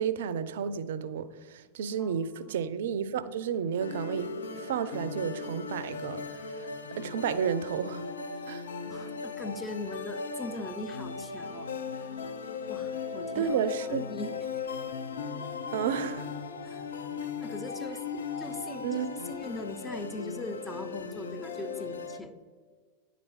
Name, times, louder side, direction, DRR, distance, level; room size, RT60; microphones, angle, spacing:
voice 1, 0.0-4.3 4.6-6.7 7.0-8.1 8.5-8.7 13.4-14.1 15.7-16.3 18.8-19.1, right 8 dB, 70° right, 0.4 m, -31 dB
sound 1, 3.8-22.2, left 5 dB, 75° left, 0.5 m, -37 dB
voice 2, 8.8-11.7 12.7-13.6 13.9-14.5 16.6-16.8 17.4-18.0 18.4-22.4, left 2 dB, 10° left, 0.6 m, -40 dB
9.9 x 3.9 x 3.1 m
hypercardioid pair, 95°, 0 cm